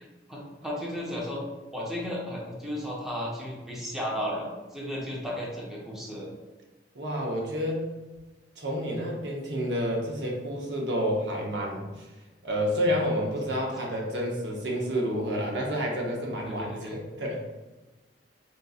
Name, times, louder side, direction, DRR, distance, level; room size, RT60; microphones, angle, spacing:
voice 1, 0.3-1.4 1.7-6.3 16.5-17.0, equal, 5° right, -5 dB, 0.6 m, -34 dB
voice 2, 6.9-7.9 8.6-12.1 12.4-17.4, equal, 80° right, -1 dB, 0.8 m, -29 dB
4.5 x 2.6 x 2.3 m, 1.2 s
head